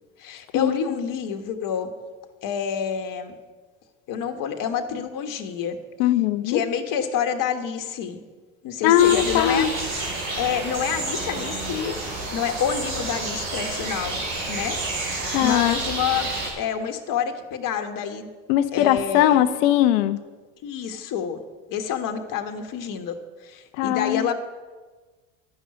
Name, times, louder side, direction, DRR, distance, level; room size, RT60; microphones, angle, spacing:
voice 1, 0.2-1.9 2.4-3.3 4.1-5.8 6.4-8.2 8.6-9.7 10.4-11.9 12.3-14.2 14.5-14.8 15.4-16.3 16.6-18.3 18.7-19.5 20.6-21.4 21.7-23.2 23.4-24.3, left 8 dB, 55° left, 6 dB, 1.5 m, -28 dB
voice 2, 6.0-6.6 8.8-9.7 15.3-15.8 18.5-20.2 23.8-24.3, left 12 dB, 70° left, 13 dB, 0.9 m, -20 dB
sound 1, 9.0-16.5, right 2 dB, 90° right, 5.2 m, -29 dB
11.5 x 6.4 x 9.5 m, 1.3 s
hypercardioid pair, 85°, 39 cm